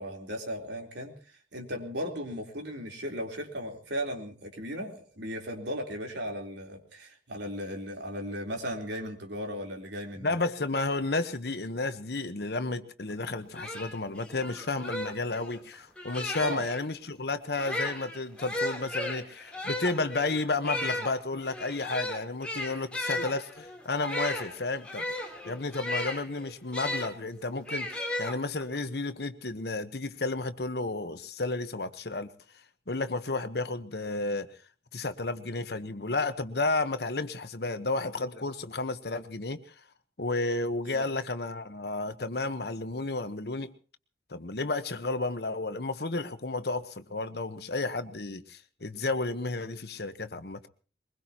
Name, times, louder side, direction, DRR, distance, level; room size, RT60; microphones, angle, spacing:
voice 1, 0.0-10.4 16.4-16.6 40.8-41.0, equal, 85° right, 2 dB, 3.8 m, -36 dB
voice 2, 10.2-25.0 25.4-27.9 28.2-32.3 32.9-34.5 34.9-39.7 40.2-43.7 44.3-50.6, left 3 dB, 65° left, 11 dB, 1.2 m, -32 dB
sound 1, 13.2-13.3 13.5-16.8 17.5-27.1 27.7-28.8, left 1 dB, 5° left, 3.4 m, -35 dB
23.0 x 21.0 x 3.0 m, 0.40 s
head